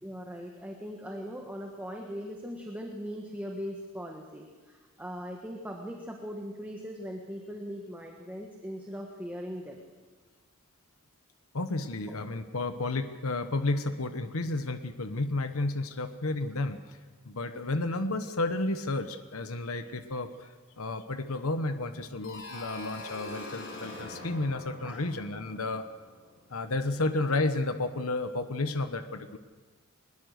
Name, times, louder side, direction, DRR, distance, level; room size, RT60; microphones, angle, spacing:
voice 1, 0.0-9.9 24.8-25.0, equal, 10° right, 1 dB, 1.4 m, -40 dB
voice 2, 11.5-17.0 17.2-20.5 20.8-25.8 26.5-29.4, left 2 dB, 75° left, 9 dB, 1.1 m, -32 dB
autoharp glissando down, 22.2-26.9, left 2 dB, 55° left, 3.6 m, -44 dB
21.5 x 20.5 x 6.6 m, 1.4 s
head